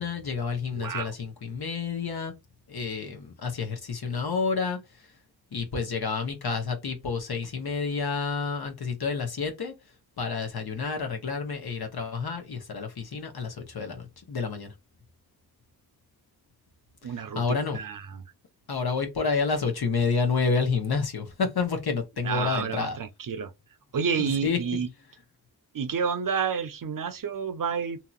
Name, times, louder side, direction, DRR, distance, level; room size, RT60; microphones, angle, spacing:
voice 1, 0.0-2.3 2.7-5.1 5.5-9.7 10.2-14.7 17.0-17.8 18.7-23.0 24.2-24.6, left 5 dB, 75° left, 1.0 m, -29 dB
voice 2, 0.7-1.1 17.0-17.4 17.7-18.1 22.2-23.5 23.9-24.9 25.7-28.0, right 6 dB, 60° right, 0.6 m, -29 dB
2.8 x 2.8 x 2.4 m
wide cardioid pair, 70°, 38 cm